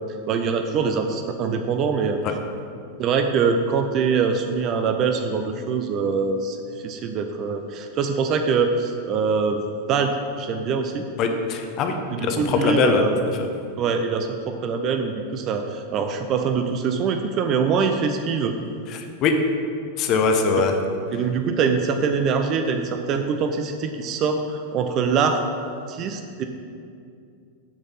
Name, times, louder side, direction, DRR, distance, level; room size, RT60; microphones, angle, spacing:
voice 1, 0.3-2.4 3.0-9.6 9.9-11.0 12.1-13.2 13.8-18.5 20.6-20.7 21.1-25.5 25.9-26.4, right 5 dB, 35° right, 6 dB, 0.5 m, -23 dB
voice 2, 11.2-13.0 13.4-13.5 18.9-19.3 20.0-20.7, left 5 dB, 35° left, 5 dB, 0.8 m, -22 dB
7.1 x 5.0 x 5.6 m, 2.4 s
figure-of-eight pair, 90°, 0 cm